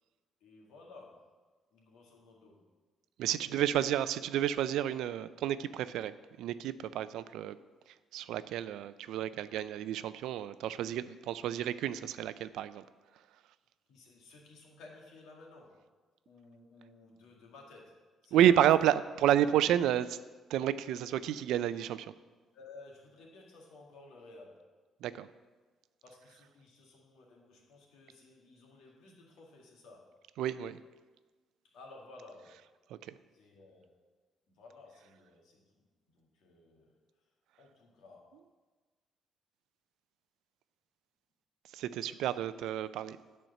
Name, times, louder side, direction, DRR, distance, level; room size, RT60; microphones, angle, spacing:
voice 1, 0.4-1.3 1.7-2.6 3.3-4.0 13.9-15.9 16.3-18.4 18.8-19.0 22.5-24.7 26.0-30.2 31.6-32.7 33.3-34.0 34.5-35.9 36.1-37.0 37.6-38.4 42.0-42.9, left 3 dB, 85° left, -1 dB, 1.9 m, -55 dB
voice 2, 3.2-6.1 6.4-7.6 8.1-12.8 18.3-20.2 20.5-22.1 25.0-25.3 30.4-30.8 33.0-33.1 41.7-43.2, right 11 dB, 85° right, 14 dB, 0.3 m, -30 dB
9.1 x 4.5 x 6.6 m, 1.3 s
cardioid pair, 160°, 0 cm